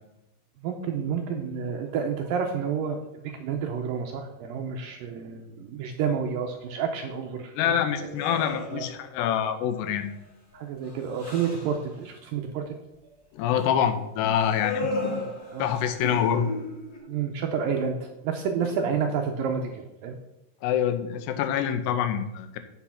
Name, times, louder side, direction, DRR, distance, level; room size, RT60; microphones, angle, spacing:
voice 1, 0.6-8.1 8.7-8.9 10.5-12.8 15.0-15.7 17.1-20.2, right 6 dB, 75° right, 3 dB, 2.1 m, -30 dB
voice 2, 7.6-10.1 13.3-15.2 15.6-16.5 18.6-18.7 20.6-22.6, left 9 dB, 90° left, 9 dB, 3.0 m, -26 dB
sound 1, 8.1-9.1 9.7-10.2 10.5-11.8 14.3-17.0, left 2 dB, 40° left, 1.7 m, -35 dB
8.4 x 6.9 x 5.7 m, 0.87 s
omnidirectional pair, 4.8 m